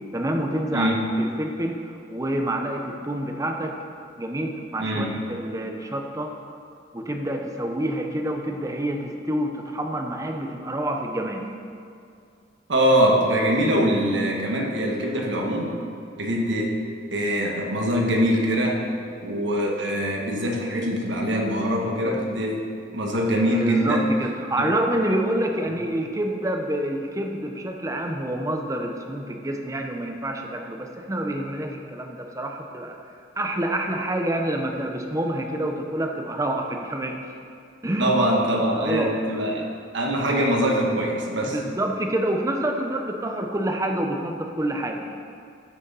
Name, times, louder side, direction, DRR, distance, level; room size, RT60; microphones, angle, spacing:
voice 1, 0.1-1.8 2.1-3.8 4.2-6.3 6.9-11.5 23.5-33.0 33.4-37.2 37.8-38.4 38.8-39.1 41.4-45.1, right 1 dB, 15° right, 3 dB, 0.7 m, -27 dB
voice 2, 0.7-1.0 4.8-5.2 12.7-15.8 16.2-16.8 17.1-18.8 19.2-22.7 22.9-24.1 24.6-24.7 38.0-39.7 39.9-41.6, equal, 75° right, 0 dB, 1.4 m, -23 dB
13.0 x 6.3 x 4.1 m, 2.4 s
head